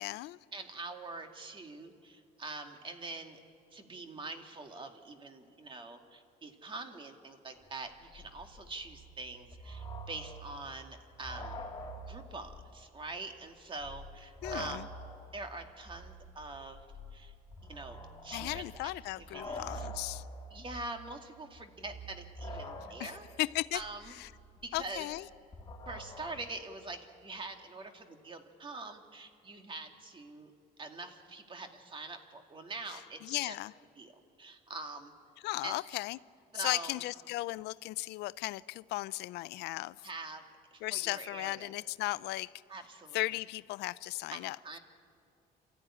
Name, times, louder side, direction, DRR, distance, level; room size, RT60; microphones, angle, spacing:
voice 1, 0.0-0.4 14.4-14.9 18.3-20.3 22.8-23.8 24.1-24.3 24.7-25.3 32.9-33.7 35.4-36.2 36.5-40.1 40.8-42.6 43.1-44.6, left 19 dB, 85° left, 18 dB, 0.5 m, -36 dB
voice 2, 0.5-3.4 3.7-11.6 12.0-14.9 15.3-16.8 17.1-17.3 17.6-18.9 19.2-19.9 20.5-23.3 23.7-24.1 24.6-25.1 25.9-30.5 30.8-33.6 34.0-34.1 34.4-35.1 35.6-35.8 36.5-37.0 40.0-40.4 40.7-41.7 42.7-43.2 44.3-44.8, right 3 dB, 30° right, 5 dB, 2.2 m, -44 dB
sound 1, 7.6-7.7 7.9-12.8 13.0-13.1 13.7-26.3, equal, 25° left, 3.4 m, -46 dB
27.5 x 14.0 x 9.9 m, 2.4 s
cardioid pair, 110°, 17 cm